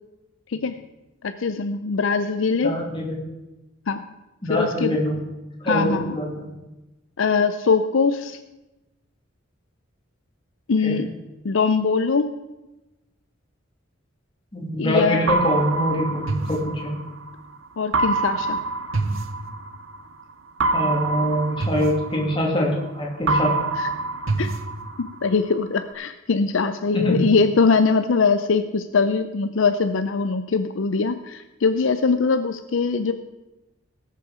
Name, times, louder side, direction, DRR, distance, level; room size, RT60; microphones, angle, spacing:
voice 1, 1.2-2.7 3.9-4.0 4.5-5.0 5.6-6.2 7.2-8.4 10.7-11.1 11.4-12.3 14.8-15.4 17.8-18.6 23.8-23.9 24.4-24.5 25.0-33.1, left 4 dB, 70° left, 10 dB, 0.5 m, -22 dB
voice 2, 2.6-3.2 4.4-5.2 5.6-6.4 10.8-11.0 14.5-16.9 20.7-23.5 26.9-27.2, equal, 25° left, -2 dB, 2.7 m, -24 dB
sound 1, 15.3-17.3 17.9-20.0 20.6-22.9 23.3-25.3, right 3 dB, 75° right, 0.9 m, -25 dB
18.5 x 6.8 x 4.9 m, 1.0 s
head